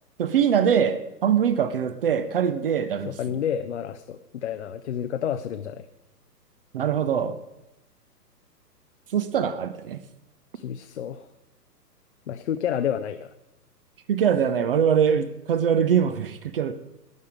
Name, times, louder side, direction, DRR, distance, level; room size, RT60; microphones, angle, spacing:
voice 1, 0.2-3.1 6.7-7.4 9.1-10.0 14.1-16.7, right 8 dB, 35° right, 13 dB, 0.6 m, -23 dB
voice 2, 3.0-5.8 10.5-11.3 12.3-13.3, left 9 dB, 45° left, 8 dB, 0.6 m, -30 dB
12.0 x 9.4 x 5.0 m, 0.91 s
figure-of-eight pair, 120°, 49 cm